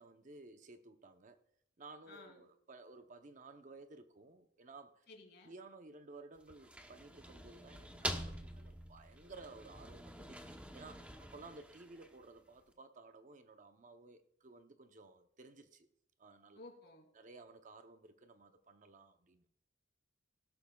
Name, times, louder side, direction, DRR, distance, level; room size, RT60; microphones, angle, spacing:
voice 1, 0.0-1.4 1.8-5.1 5.4-15.9 16.2-16.6 17.1-19.4, right 3 dB, 40° right, 0.8 m, -56 dB
voice 2, 2.1-2.4 5.1-5.6 16.5-17.1, left 2 dB, 60° left, 2.8 m, -55 dB
sound 1, 6.4-12.4, right 1 dB, 5° right, 0.9 m, -46 dB
16.0 x 12.5 x 2.3 m
head